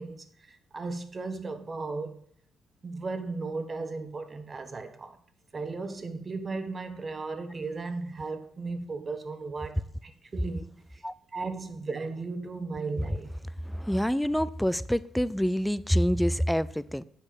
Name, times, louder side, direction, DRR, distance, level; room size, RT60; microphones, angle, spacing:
voice 1, 0.0-2.2 2.8-5.2 5.5-10.6 10.9-11.0 11.3-13.3, right 3 dB, 35° right, 1.2 m, -36 dB
voice 2, 13.7-17.0, equal, ahead, 0.4 m, -26 dB
8.3 x 5.4 x 6.5 m
cardioid pair, 90°, 0 cm